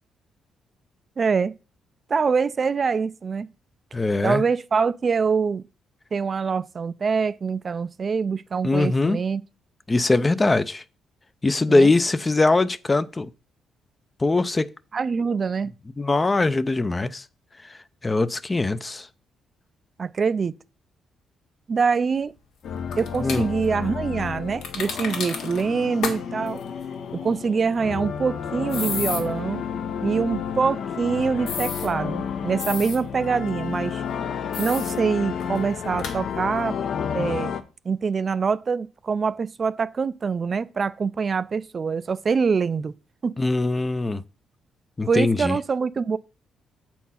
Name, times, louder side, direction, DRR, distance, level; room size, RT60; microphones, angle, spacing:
voice 1, 1.2-1.5 2.1-3.5 4.2-5.6 6.1-9.4 11.7-11.9 14.9-15.7 20.0-20.5 21.7-22.3 23.0-26.6 27.2-29.6 30.0-34.0 34.6-36.8 37.1-37.5 37.9-42.9 43.2-43.3 45.1-46.2, right 5 dB, 40° right, 0.4 m, -24 dB
voice 2, 3.9-4.4 8.6-9.2 9.9-10.8 11.4-13.3 14.2-14.7 16.0-17.2 18.0-19.1 23.2-23.5 43.4-44.2 45.0-45.6, left 2 dB, 20° left, 0.6 m, -21 dB
sound 1, 22.6-37.6, left 7 dB, 65° left, 0.9 m, -31 dB
sound 2, 22.9-23.4 24.6-25.6 26.0-26.2 26.5-26.6 28.7-29.2 31.5-31.9 32.6-33.0 34.5-34.9 35.4-35.5 36.0-36.1, left 5 dB, 80° left, 2.0 m, -31 dB
8.2 x 4.4 x 5.6 m
cardioid pair, 90°, 0 cm